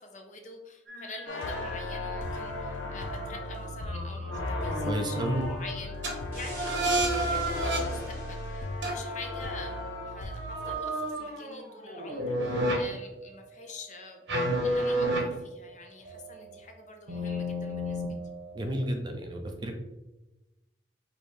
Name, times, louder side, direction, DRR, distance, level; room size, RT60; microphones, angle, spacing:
voice 1, 0.0-5.9 6.3-14.2 14.6-18.0, left 3 dB, 40° left, 3 dB, 0.6 m, -46 dB
sound 1, 0.9-5.7 6.0-6.2 6.4-7.8 8.8-12.8 14.3-15.2 16.1-16.6 17.1-18.5, right 1 dB, 75° right, 1.0 m, -32 dB
sound 2, 1.3-10.7, left 2 dB, 85° left, 0.5 m, -36 dB
voice 2, 4.9-5.4 18.5-19.8, equal, 25° right, 4 dB, 0.4 m, -32 dB
sound 3, 6.3-8.8, right 2 dB, 50° right, 1.3 m, -45 dB
5.3 x 2.6 x 3.2 m, 1.0 s
head